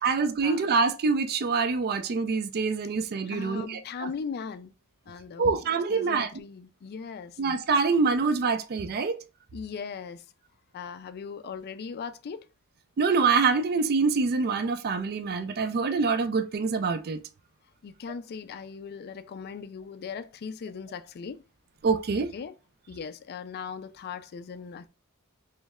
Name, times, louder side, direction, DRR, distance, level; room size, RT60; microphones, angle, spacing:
voice 1, 0.0-3.8 5.4-6.3 7.4-9.2 13.0-17.2 21.8-22.3, right 4 dB, 45° right, 0.4 m, -25 dB
voice 2, 3.2-4.7 5.1-5.6 5.9-7.4 9.5-10.2 10.7-12.4 17.8-21.4 22.3-22.5 22.9-24.9, left 6 dB, 45° left, 0.3 m, -39 dB
3.1 x 3.1 x 3.5 m
head